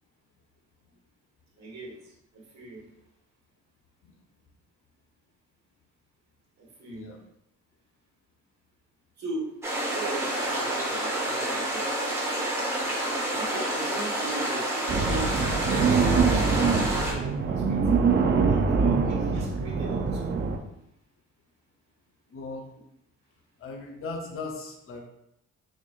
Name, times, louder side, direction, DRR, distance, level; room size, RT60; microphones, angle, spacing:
voice 1, 1.6-2.8 6.6-7.0 9.2-9.5 9.9-11.9 12.7-13.0 13.3-16.4 16.8-20.6, right 2 dB, 60° right, -4 dB, 1.4 m, -39 dB
voice 2, 6.9-7.2 22.3-22.7 23.6-25.0, left 3 dB, 45° left, 2 dB, 0.7 m, -38 dB
sound 1, 9.6-17.1, right 1 dB, 10° right, 1.5 m, -29 dB
sound 2, 14.9-20.6, right 5 dB, 35° right, 0.4 m, -24 dB
4.1 x 3.0 x 2.4 m, 0.81 s
cardioid pair, 90°, 30 cm